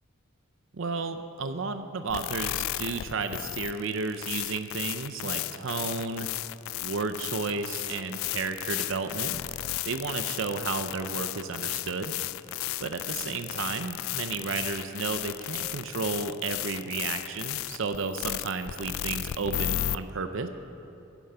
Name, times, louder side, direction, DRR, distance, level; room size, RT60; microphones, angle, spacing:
voice 1, 0.7-6.3 6.8-9.4 9.9-12.1 12.8-20.5, right 4 dB, 65° right, 8 dB, 0.6 m, -32 dB
sound 1, 2.1-20.0, left 14 dB, 75° left, 0.3 m, -34 dB
15.0 x 12.0 x 5.6 m, 2.9 s
head